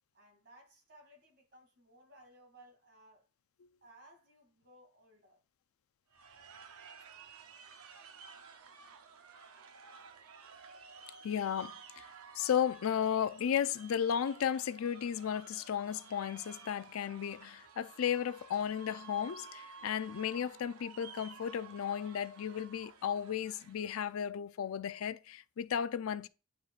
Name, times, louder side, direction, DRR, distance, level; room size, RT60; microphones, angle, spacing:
voice 1, 0.1-3.3 3.8-5.4, right 1 dB, 50° right, 2.4 m, -60 dB
sound 1, 6.1-24.1, right 5 dB, 85° right, 0.7 m, -54 dB
voice 2, 11.2-12.1 12.4-26.3, left 8 dB, 70° left, 0.4 m, -34 dB
9.4 x 4.3 x 2.4 m
head